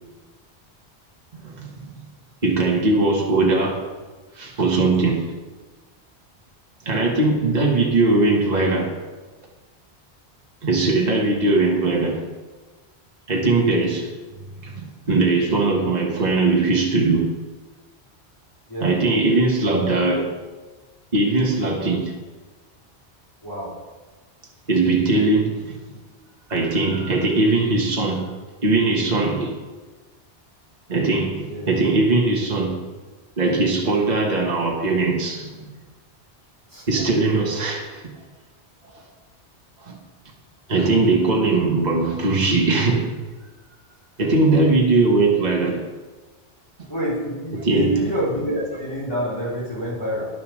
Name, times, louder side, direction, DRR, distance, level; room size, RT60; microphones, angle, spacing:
voice 1, 1.3-1.9 2.4-3.9 4.4-5.3 6.8-8.9 10.6-12.2 13.3-14.1 14.6-17.3 18.8-20.3 21.1-22.1 24.7-25.8 26.5-28.3 28.6-29.6 30.9-32.8 33.4-35.7 36.9-38.0 39.8-40.0 40.7-43.1 44.2-45.8 47.5-47.9, right 3 dB, 40° right, 0 dB, 1.6 m, -20 dB
voice 2, 23.4-23.7 31.5-31.9 36.7-36.9 46.9-50.3, equal, 20° left, -7 dB, 3.5 m, -27 dB
10.5 x 6.9 x 6.4 m, 1.3 s
omnidirectional pair, 1.1 m